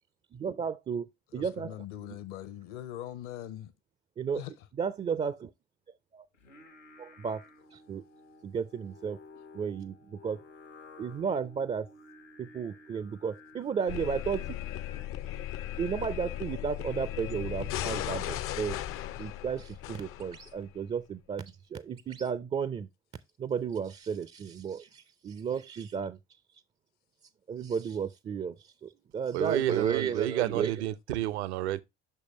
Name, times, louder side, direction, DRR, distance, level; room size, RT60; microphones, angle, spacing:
voice 1, 0.3-1.1 1.3-1.8 4.2-4.4 4.8-5.5 6.1-6.2 7.0-7.4 7.7-8.0 8.4-9.2 9.5-10.4 11.0-11.9 12.4-14.6 15.8-22.9 23.4-26.2 27.5-30.7, right 6 dB, 20° right, 0.4 m, -33 dB
voice 2, 1.3-3.7 4.3-4.5, left 12 dB, 55° left, 0.8 m, -41 dB
Singing, 6.3-18.5, left 2 dB, 85° left, 1.1 m, -54 dB
sound 1, 13.9-20.7, left 13 dB, 40° left, 0.4 m, -37 dB
voice 3, 29.3-31.8, right 13 dB, 70° right, 0.6 m, -30 dB
6.3 x 5.5 x 2.9 m
figure-of-eight pair, 55°, 35 cm